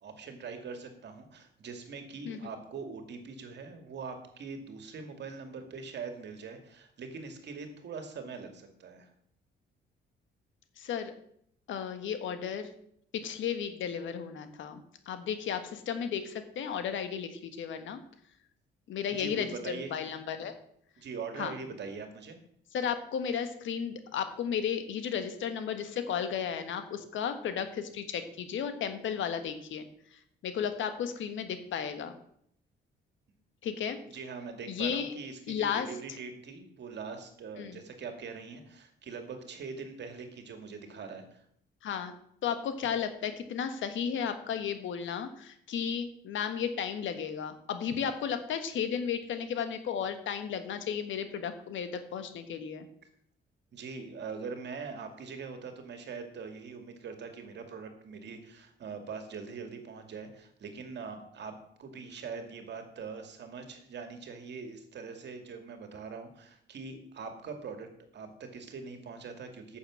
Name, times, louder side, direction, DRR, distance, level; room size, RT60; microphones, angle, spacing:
voice 1, 0.0-9.1 19.1-20.0 21.0-22.4 34.1-41.4 53.7-61.5 61.8-67.9 68.1-69.8, right 5 dB, 60° right, 6 dB, 2.2 m, -42 dB
voice 2, 10.8-11.1 11.7-12.7 13.1-14.8 15.1-18.0 18.9-20.5 21.4-21.5 22.7-29.8 30.4-32.1 33.6-34.0 34.7-35.2 35.5-35.9 37.6-37.8 41.8-42.1 42.4-52.9, left 7 dB, 75° left, 9 dB, 1.5 m, -34 dB
9.1 x 7.2 x 7.4 m, 0.69 s
cardioid pair, 90°, 20 cm